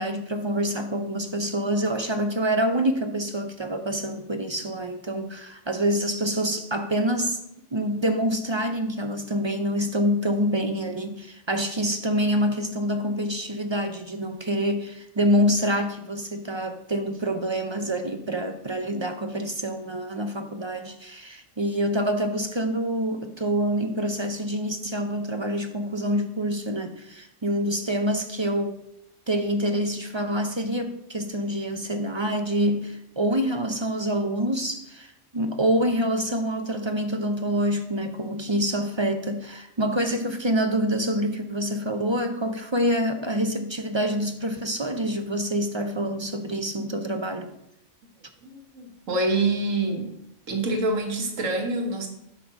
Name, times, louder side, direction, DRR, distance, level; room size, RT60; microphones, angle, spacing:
voice 1, 0.0-7.4 7.7-28.8 29.3-47.5, equal, 35° right, 7 dB, 0.5 m, -26 dB
voice 2, 48.4-50.1 50.5-52.1, right 2 dB, 85° right, 4 dB, 1.7 m, -26 dB
8.7 x 5.4 x 5.9 m, 0.82 s
omnidirectional pair, 1.3 m